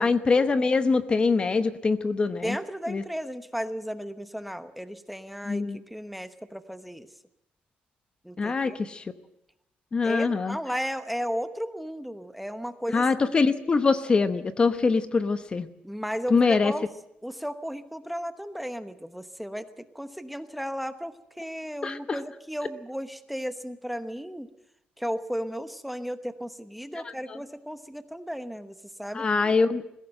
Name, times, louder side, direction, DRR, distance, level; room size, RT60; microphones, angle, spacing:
voice 1, 0.0-2.6 2.9-3.0 5.4-5.8 8.4-9.0 9.9-10.6 12.9-15.7 16.3-16.7 21.8-22.2 29.1-29.8, left 4 dB, 30° left, 11 dB, 0.9 m, -23 dB
voice 2, 2.4-7.1 8.2-8.8 10.0-13.4 15.8-16.9 17.2-24.5 25.0-29.5, equal, ahead, 10 dB, 1.0 m, -35 dB
20.5 x 16.0 x 7.8 m, 0.81 s
cardioid pair, 125°, 3 cm